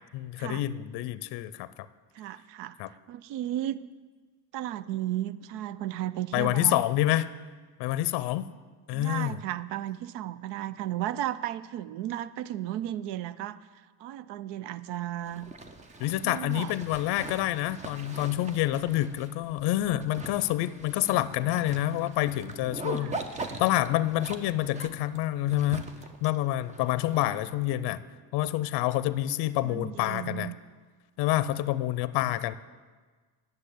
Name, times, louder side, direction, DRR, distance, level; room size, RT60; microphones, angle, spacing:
voice 1, 0.1-1.7 2.8-2.9 6.3-7.3 7.8-8.5 8.9-9.4 16.0-23.2 23.6-25.9 26.2-28.0 28.3-30.5 31.2-32.5, left 14 dB, 65° left, 15 dB, 0.5 m, -27 dB
voice 2, 2.1-2.8 3.1-3.8 4.5-6.8 8.9-13.6 14.0-15.5 16.2-16.7 21.4-21.8 23.0-23.2 29.6-30.5, right 13 dB, 75° right, 17 dB, 0.6 m, -34 dB
Zipper (clothing), 15.2-27.7, right 3 dB, 15° right, 0.4 m, -42 dB
10.0 x 6.8 x 8.3 m, 1.4 s
cardioid pair, 170°, 43 cm